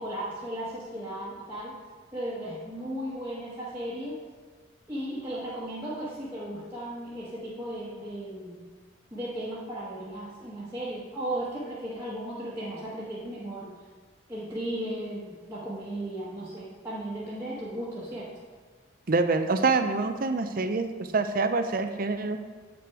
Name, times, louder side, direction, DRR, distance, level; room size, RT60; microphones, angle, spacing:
voice 1, 0.0-1.8 2.1-4.1 4.9-8.6 9.1-13.7 14.3-18.3, right 1 dB, 10° right, -10 dB, 1.3 m, -35 dB
voice 2, 19.1-22.4, right 3 dB, 45° right, 8 dB, 0.5 m, -26 dB
8.4 x 6.1 x 4.8 m, 1.5 s
head